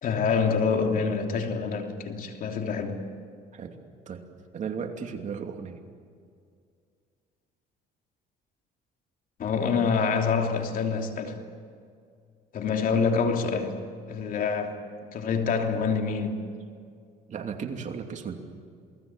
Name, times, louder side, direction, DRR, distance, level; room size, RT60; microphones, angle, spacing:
voice 1, 0.0-3.0 9.4-11.4 12.5-13.8 14.1-14.8 15.1-16.4, left 5 dB, 55° left, 3.1 m, -26 dB
voice 2, 4.5-5.8 17.3-18.4, right 6 dB, 45° right, 2.8 m, -35 dB
28.0 x 20.0 x 8.9 m
cardioid pair, 110°, 17 cm